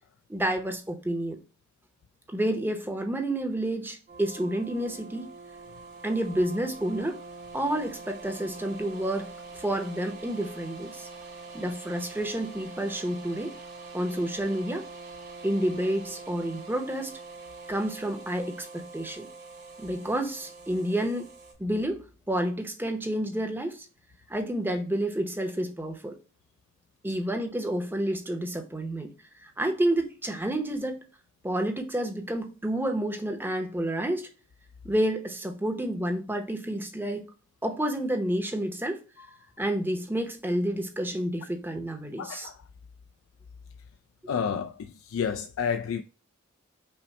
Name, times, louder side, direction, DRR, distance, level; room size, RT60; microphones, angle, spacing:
voice 1, 0.3-1.4 2.3-5.3 6.0-7.2 7.5-11.1 11.5-13.5 13.9-14.9 15.4-17.1 17.7-19.3 19.8-21.3 21.6-23.9 24.3-26.1 27.0-29.1 29.4-31.0 31.4-34.3 34.8-37.2 37.6-39.0 39.6-42.5, right 1 dB, 10° right, 0.7 m, -29 dB
sound 1, 4.1-21.5, right 3 dB, 55° right, 2.0 m, -44 dB
voice 2, 42.2-42.6 44.3-46.0, left 7 dB, 90° left, 0.3 m, -30 dB
5.7 x 2.1 x 4.1 m
head